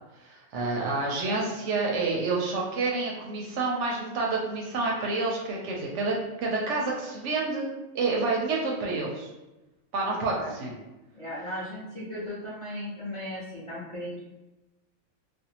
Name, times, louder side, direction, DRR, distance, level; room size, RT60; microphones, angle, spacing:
voice 1, 0.2-9.3 9.9-10.7, right 3 dB, 70° right, -2 dB, 0.8 m, -29 dB
voice 2, 11.1-14.2, left 1 dB, 35° left, -9 dB, 0.6 m, -36 dB
2.5 x 2.2 x 2.8 m, 1.0 s
omnidirectional pair, 1.4 m